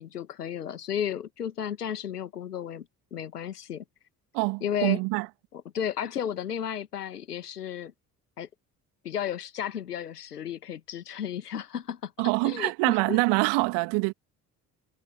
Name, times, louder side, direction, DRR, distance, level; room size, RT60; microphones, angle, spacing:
voice 1, 0.0-3.8 4.6-5.0 5.5-7.9 8.4-8.5 9.0-12.1 12.4-13.2, left 9 dB, 80° left, 2.0 m, -33 dB
voice 2, 4.3-5.3 12.2-14.1, right 27 dB, 60° right, 2.5 m, -25 dB
figure-of-eight pair, 50°, 46 cm